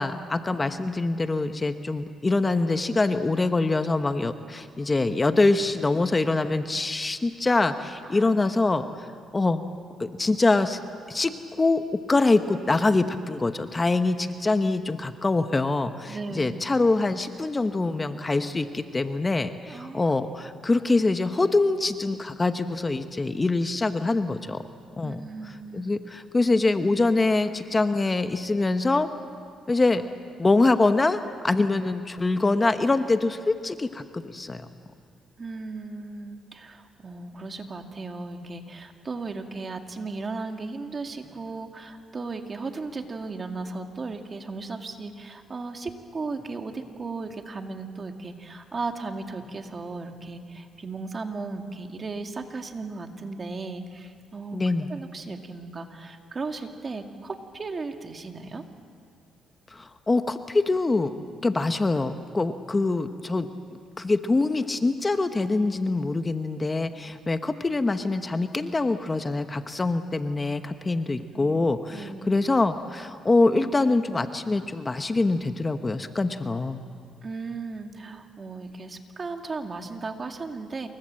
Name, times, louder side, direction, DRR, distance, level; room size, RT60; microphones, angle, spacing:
voice 1, 0.0-9.1 9.3-9.6 10.0-10.8 11.1-11.3 11.6-11.8 12.1-24.6 25.0-25.2 25.7-29.1 29.7-30.0 30.4-34.7 54.5-54.9 59.7-61.2 61.4-63.5 64.0-76.8, left 3 dB, 25° left, 9 dB, 1.1 m, -24 dB
voice 2, 16.1-16.6 19.7-20.1 20.4-20.5 25.0-25.9 35.4-58.6 71.3-71.5 71.9-72.4 77.2-80.9, right 3 dB, 35° right, 5 dB, 2.3 m, -36 dB
28.0 x 23.5 x 7.7 m, 2.3 s
cardioid pair, 90°, 0 cm